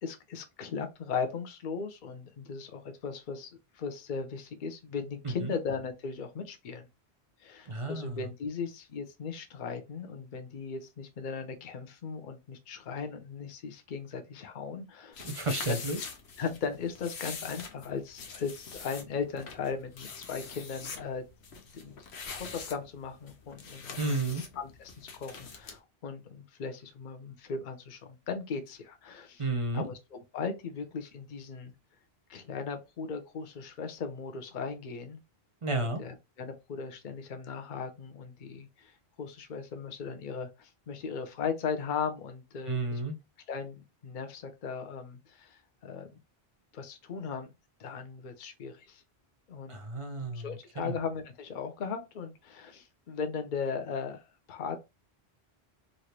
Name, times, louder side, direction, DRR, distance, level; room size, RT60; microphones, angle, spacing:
voice 1, 0.0-6.9 7.4-15.3 15.7-15.8 16.4-21.2 21.7-22.0 22.3-29.4 29.7-31.7 32.3-35.2 35.8-43.0 43.5-46.2 46.7-47.5 47.8-49.0 49.5-49.8 50.2-54.8, left 5 dB, 55° left, 0.7 m, -38 dB
voice 2, 7.7-8.3 15.2-16.0 24.0-24.4 29.4-29.9 35.6-36.0 42.7-43.2 49.7-50.9, right 2 dB, 40° right, 0.5 m, -32 dB
sound 1, 15.1-25.8, left 5 dB, 90° left, 1.0 m, -44 dB
3.2 x 2.5 x 2.8 m
omnidirectional pair, 1.1 m